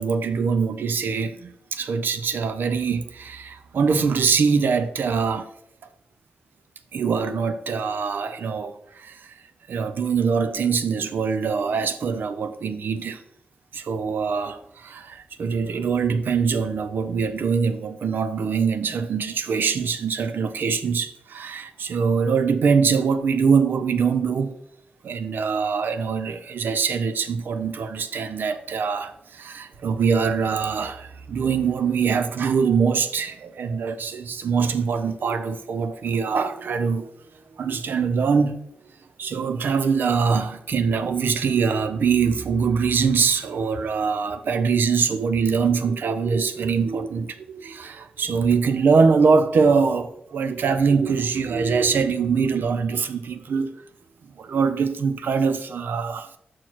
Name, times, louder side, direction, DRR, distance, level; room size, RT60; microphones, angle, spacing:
voice 1, 0.0-5.5 6.9-9.3 9.7-13.2 13.7-24.5 25.0-37.1 37.5-38.6 39.2-53.7 54.4-56.4, right 5 dB, 85° right, 0.6 m, -23 dB
5.9 x 4.6 x 6.1 m
wide cardioid pair, 140°, 3 cm